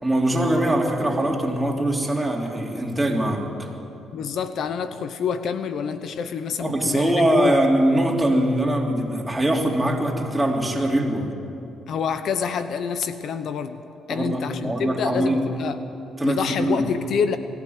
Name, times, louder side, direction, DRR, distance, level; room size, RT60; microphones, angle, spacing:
voice 1, 0.0-3.7 6.6-11.3 14.1-15.4 16.2-16.8, right 1 dB, 10° right, 0 dB, 3.5 m, -22 dB
voice 2, 4.1-7.5 11.9-13.8 14.1-15.8 16.2-17.4, left 6 dB, 70° left, 11 dB, 0.9 m, -27 dB
21.0 x 15.0 x 9.6 m, 2.7 s
cardioid pair, 90°, 0 cm